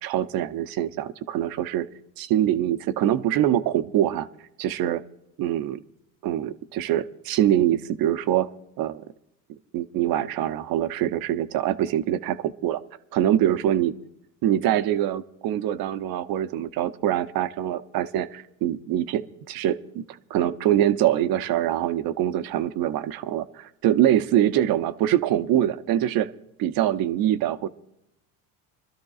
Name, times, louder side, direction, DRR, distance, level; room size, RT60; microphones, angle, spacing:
voice 1, 0.0-1.9 2.2-4.3 4.6-5.0 5.4-5.8 6.2-8.5 8.8-9.0 9.7-12.8 13.1-13.9 14.4-26.3 26.6-27.7, right 11 dB, 55° right, 11 dB, 0.8 m, -24 dB
25.0 x 12.5 x 2.4 m, 0.81 s
hypercardioid pair, 80°, 42 cm